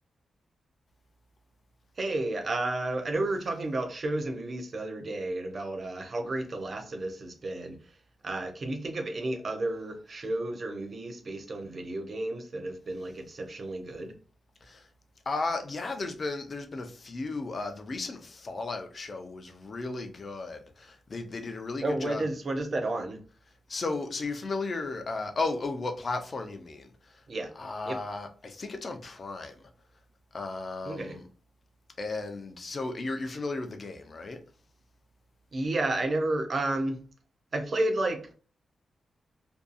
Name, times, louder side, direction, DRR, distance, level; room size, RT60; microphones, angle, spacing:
voice 1, 2.0-7.8 8.2-14.1 21.8-23.2 27.3-27.5 27.9-28.0 30.8-31.2 35.5-37.0 37.5-38.3, right 2 dB, 40° right, 0.5 m, -32 dB
voice 2, 15.3-22.3 23.7-27.2 27.6-29.7 30.3-31.2 32.0-34.4, left 3 dB, 35° left, 0.4 m, -35 dB
2.6 x 2.3 x 2.4 m
wide cardioid pair, 140°, 0 cm